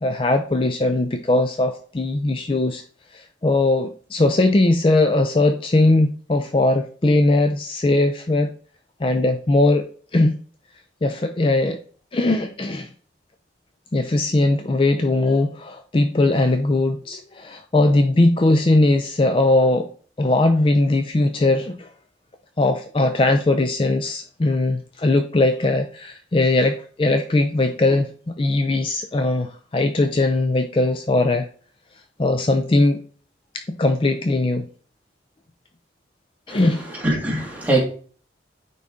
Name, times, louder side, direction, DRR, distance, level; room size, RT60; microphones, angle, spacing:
voice 1, 0.0-2.8 3.1-8.5 9.0-9.9 10.1-10.4 11.0-11.8 12.1-12.9 13.9-19.9 20.2-21.9 22.6-31.5 32.2-33.0 33.5-34.7 36.5-36.8, left 2 dB, 30° left, 7 dB, 0.4 m, -19 dB
voice 2, 36.9-37.8, right 2 dB, 10° right, -2 dB, 1.8 m, -22 dB
9.3 x 3.9 x 3.6 m, 0.43 s
head